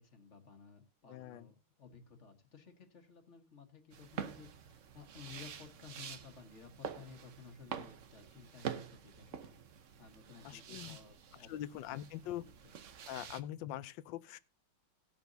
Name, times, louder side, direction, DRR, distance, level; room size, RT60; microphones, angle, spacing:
voice 1, 0.0-9.5 10.0-12.7 13.1-13.3, left 6 dB, 35° left, 1.6 m, -56 dB
voice 2, 1.1-1.4 10.4-11.0 11.5-12.4 13.1-14.4, left 12 dB, 70° left, 1.2 m, -43 dB
sound 1, 3.9-13.4, right 8 dB, 65° right, 0.7 m, -47 dB
18.0 x 7.0 x 2.7 m
omnidirectional pair, 2.3 m